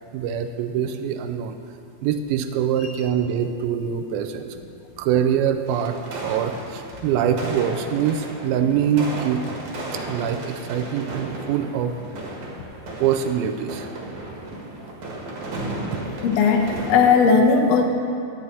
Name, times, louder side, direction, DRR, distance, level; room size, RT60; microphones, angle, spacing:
voice 1, 0.1-1.6 2.0-4.6 5.0-9.4 9.9-12.0 13.0-13.9, right 8 dB, 90° right, 7 dB, 2.5 m, -24 dB
sound 1, 5.7-17.3, right 2 dB, 60° right, 2.9 m, -34 dB
voice 2, 16.2-17.8, left 5 dB, 80° left, 2 dB, 1.5 m, -17 dB
12.0 x 5.6 x 9.0 m, 2.5 s
omnidirectional pair, 4.3 m